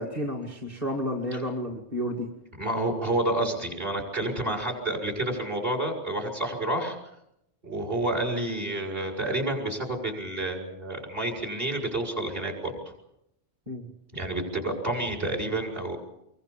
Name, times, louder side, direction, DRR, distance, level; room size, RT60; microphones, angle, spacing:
voice 1, 0.0-2.3 13.7-13.9, equal, 35° right, 2 dB, 2.3 m, -31 dB
voice 2, 2.6-7.0 7.6-12.7 14.1-16.0, right 1 dB, 50° right, 3 dB, 6.9 m, -29 dB
26.0 x 23.5 x 7.2 m, 0.82 s
omnidirectional pair, 1.2 m